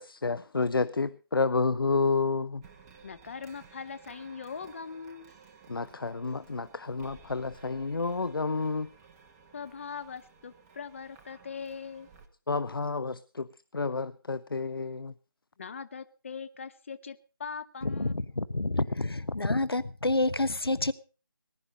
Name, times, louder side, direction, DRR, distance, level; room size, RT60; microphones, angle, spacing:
voice 1, 0.0-2.6 5.7-8.9 12.5-13.5 13.7-15.1, left 4 dB, 70° left, 0.7 m, -30 dB
sound 1, 2.6-12.3, right 5 dB, 10° right, 0.9 m, -56 dB
voice 2, 3.0-5.3 9.5-12.1 15.6-18.2, left 6 dB, 35° left, 0.7 m, -41 dB
voice 3, 17.8-20.9, left 2 dB, 85° left, 1.1 m, -28 dB
19.5 x 11.0 x 5.2 m
figure-of-eight pair, 160°, 12 cm